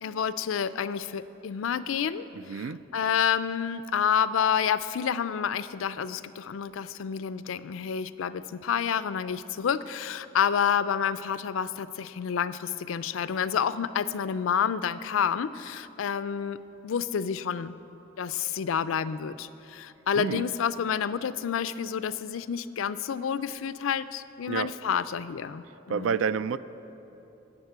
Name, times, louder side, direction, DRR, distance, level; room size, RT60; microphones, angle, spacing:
voice 1, 0.0-16.6 16.8-17.7 18.2-26.3, left 7 dB, 90° left, 15 dB, 0.4 m, -29 dB
voice 2, 2.3-2.8 20.2-20.4 24.5-24.7 25.9-26.6, right 6 dB, 85° right, 16 dB, 0.4 m, -29 dB
11.0 x 7.3 x 8.0 m, 3.0 s
head